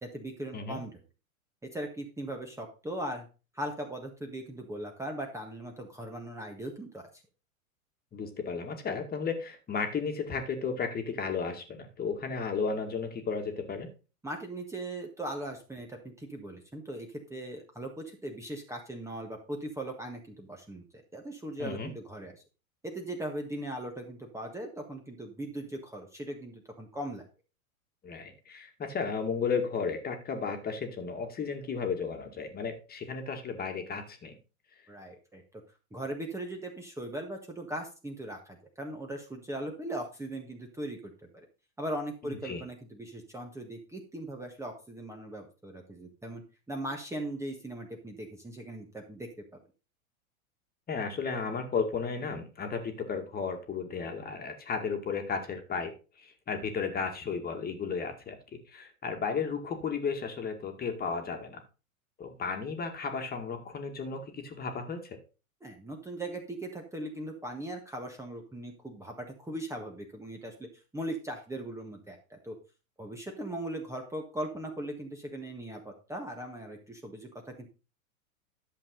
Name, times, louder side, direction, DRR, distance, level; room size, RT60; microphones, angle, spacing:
voice 1, 0.0-1.0 1.7-3.3 3.5-7.2 14.2-20.8 21.1-22.3 22.8-27.2 34.9-35.4 35.9-41.4 41.8-49.6 65.6-70.7 70.9-72.6 73.0-77.7, right 1 dB, 5° right, 2 dB, 1.5 m, -39 dB
voice 2, 8.1-13.9 21.6-21.9 28.0-34.4 42.2-42.6 50.9-55.9 56.2-58.4 58.7-61.6 62.2-65.2, left 5 dB, 20° left, 5 dB, 2.0 m, -34 dB
11.5 x 7.2 x 3.8 m, 0.32 s
hypercardioid pair, 105°, 42 cm